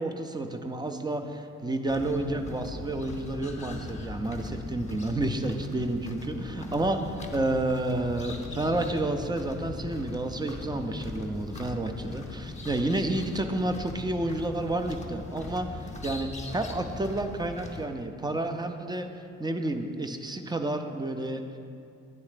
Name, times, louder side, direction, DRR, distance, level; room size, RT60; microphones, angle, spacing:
voice 1, 0.0-19.1 19.4-21.4, right 2 dB, 15° right, 7 dB, 0.4 m, -30 dB
sound 1, 1.9-17.8, left 3 dB, 25° left, 0.7 m, -40 dB
9.3 x 3.2 x 4.9 m, 2.4 s
cardioid pair, 90°, 30 cm